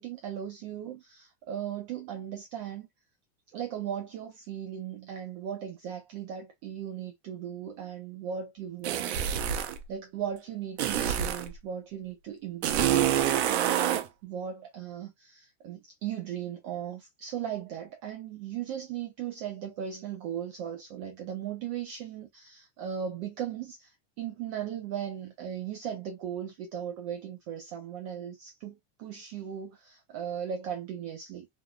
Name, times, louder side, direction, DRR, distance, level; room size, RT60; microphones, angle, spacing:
voice 1, 0.0-2.9 3.5-9.5 9.9-13.2 13.4-31.5, right 9 dB, 35° right, 0.4 m, -37 dB
sound 1, 8.8-9.8 10.8-11.5 12.6-14.1, right 10 dB, 75° right, 0.7 m, -26 dB
3.4 x 2.2 x 2.3 m
supercardioid pair, 170°, 33 cm